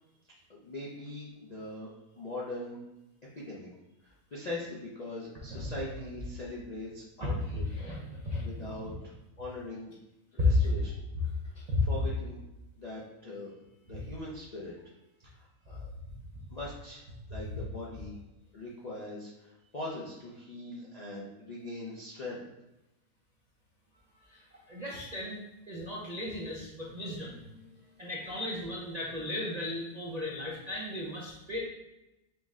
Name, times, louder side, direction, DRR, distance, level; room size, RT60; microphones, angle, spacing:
voice 1, 0.5-2.8 3.3-3.7 4.0-7.6 8.4-9.9 10.3-10.9 11.8-12.4 12.8-13.5 13.9-14.7 15.2-15.8 16.5-17.0 17.3-18.2 18.5-22.5, left 2 dB, 55° left, -6 dB, 0.4 m, -41 dB
voice 2, 7.2-8.9 10.4-10.7 11.6-11.8 13.9-14.0 17.5-17.6 24.2-25.4 25.7-27.7 28.0-31.6, left 2 dB, 55° right, -4 dB, 0.4 m, -34 dB
5.4 x 2.1 x 3.6 m, 0.94 s
omnidirectional pair, 1.6 m